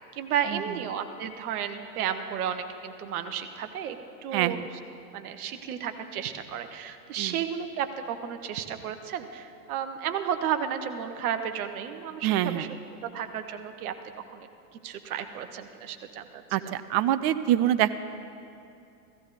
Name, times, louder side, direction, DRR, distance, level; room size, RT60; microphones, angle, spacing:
voice 1, 0.1-4.0 4.2-4.6 5.1-12.7 13.0-13.9 14.3-14.5 14.8-16.4, right 8 dB, 60° right, 8 dB, 1.2 m, -33 dB
voice 2, 4.3-4.7 7.2-7.4 12.2-12.7 16.5-18.0, right 12 dB, 40° right, 13 dB, 0.6 m, -25 dB
15.5 x 15.5 x 4.2 m, 2.7 s
hypercardioid pair, 110°, 49 cm